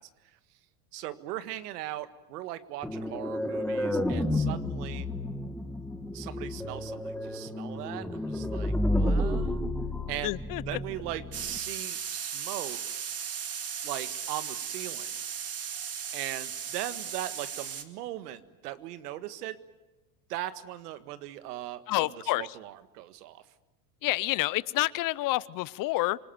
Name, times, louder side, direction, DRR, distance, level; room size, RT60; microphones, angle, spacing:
voice 1, 0.9-5.1 6.1-9.6 10.1-10.4 10.6-13.0 13.8-15.1 16.1-19.6 20.3-23.4, right 14 dB, 75° right, 12 dB, 1.7 m, -39 dB
sound 1, 2.8-11.6, left 1 dB, ahead, 2.0 m, -31 dB
voice 2, 10.2-10.8 21.9-22.5 24.0-26.2, left 19 dB, 45° left, 20 dB, 0.8 m, -28 dB
sound 2, 11.3-17.8, right 8 dB, 30° right, 2.1 m, -36 dB
27.0 x 20.0 x 9.2 m, 1.1 s
supercardioid pair, 105°, 47 cm